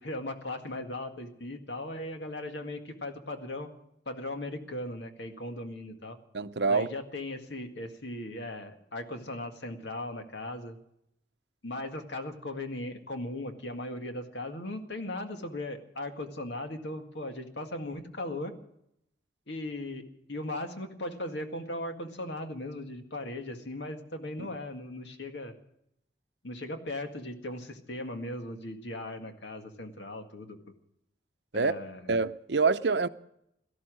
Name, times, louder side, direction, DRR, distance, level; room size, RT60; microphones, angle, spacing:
voice 1, 0.0-3.7 4.1-6.2 6.7-10.8 11.6-18.5 19.5-20.0 20.3-25.5 26.4-30.7 31.5-32.1, left 1 dB, 80° left, 1.9 m, -38 dB
voice 2, 6.3-6.9 24.4-24.5 31.5-31.7 32.1-33.1, right 4 dB, 75° right, 0.7 m, -26 dB
17.5 x 13.0 x 6.3 m
head